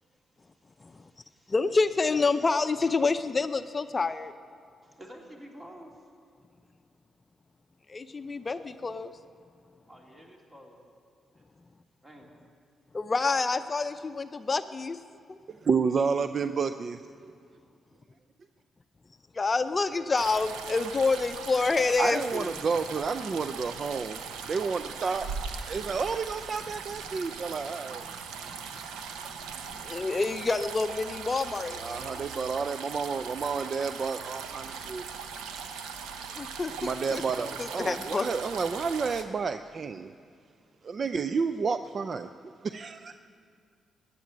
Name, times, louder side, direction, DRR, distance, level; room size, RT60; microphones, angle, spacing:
voice 1, 0.8-1.5 4.8-5.9 9.9-10.8 11.3-11.4 12.0-12.3, equal, 25° right, -1 dB, 3.3 m, -50 dB
voice 2, 1.5-4.3 7.9-9.1 12.9-15.0 15.3-15.4 19.3-22.5 27.1-27.2 29.7-32.2 36.3-37.2 37.6-38.3, left 3 dB, 35° left, 10 dB, 0.5 m, -28 dB
voice 3, 15.5-17.3 22.0-24.2 24.5-25.3 25.7-28.1 31.8-35.1 36.8-40.1 40.8-43.1, right 5 dB, 50° right, 10 dB, 0.4 m, -30 dB
sound 1, 20.2-39.2, right 6 dB, 90° right, 0.9 m, -40 dB
15.0 x 9.3 x 9.3 m, 2.2 s
supercardioid pair, 60°, 0 cm